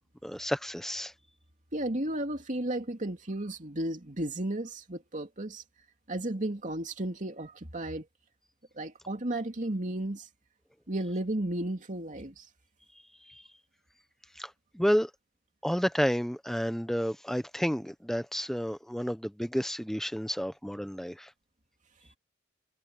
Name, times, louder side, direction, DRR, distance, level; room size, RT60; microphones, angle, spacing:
voice 1, 0.2-1.1 13.2-13.4 14.4-15.1 15.6-21.3, equal, ahead, 1.0 m, -31 dB
voice 2, 1.7-5.6 6.1-8.0 8.8-10.3 10.9-12.5, right 1 dB, 40° right, 2.7 m, -33 dB
head